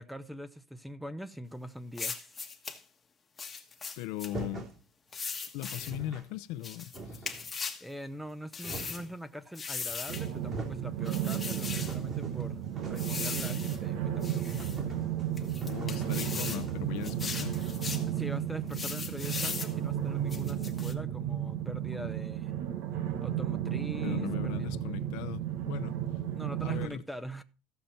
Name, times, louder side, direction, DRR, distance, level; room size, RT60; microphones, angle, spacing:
voice 1, 0.0-2.4 7.8-14.6 18.1-22.5 23.2-25.1 26.4-27.4, equal, ahead, 0.7 m, -43 dB
sound 1, 1.9-2.8 3.4-4.3 5.1-6.0 6.6-7.8 8.5-9.0 9.5-10.3 11.0-12.0 13.0-13.8 14.2-14.8 15.4-16.6 17.0-18.1 18.7-19.7 20.3-20.9, left 5 dB, 15° left, 1.3 m, -38 dB
voice 2, 4.0-4.7 5.5-7.3 15.7-17.9 24.0-26.2 26.6-27.0, left 15 dB, 70° left, 0.7 m, -39 dB
sound 2, 4.3-4.8 5.4-5.5 5.7-6.3 6.6-7.5 8.2-9.1 9.9-10.0 10.3-10.9 11.3-13.2 13.5-13.6 13.9-14.0 14.4-18.9, right 2 dB, 30° right, 2.9 m, -44 dB
sound 3, 10.1-26.9, right 10 dB, 75° right, 1.4 m, -33 dB
15.0 x 7.0 x 4.4 m
cardioid pair, 165°, 0 cm